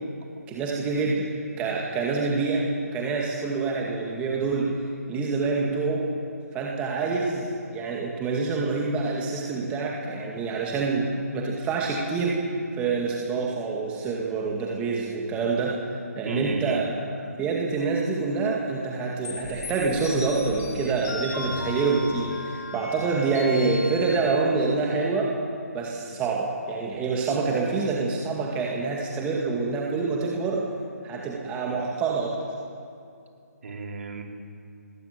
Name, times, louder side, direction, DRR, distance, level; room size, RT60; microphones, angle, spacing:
voice 1, 0.5-4.8 5.1-6.1 6.5-12.4 12.8-15.8 16.2-16.9 17.4-25.4 25.7-30.7 31.0-32.4, right 4 dB, 15° right, -2 dB, 2.1 m, -26 dB
voice 2, 16.2-16.8 33.6-34.2, right 3 dB, 55° right, 1 dB, 4.7 m, -33 dB
sound 1, 19.2-24.2, left 2 dB, 65° left, 5.5 m, -36 dB
20.0 x 18.0 x 8.0 m, 2.5 s
figure-of-eight pair, 155°, 9 cm